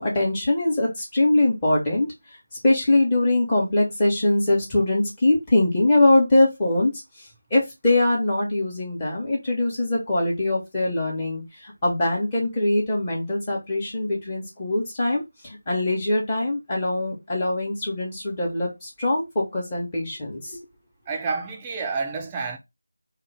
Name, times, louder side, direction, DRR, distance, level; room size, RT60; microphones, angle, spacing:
voice 1, 0.0-2.1 2.6-6.9 7.5-20.6, left 2 dB, 20° left, 0.9 m, -22 dB
voice 2, 21.1-22.6, right 4 dB, 15° right, 0.4 m, -29 dB
2.4 x 2.4 x 3.2 m
figure-of-eight pair, 165°, 0 cm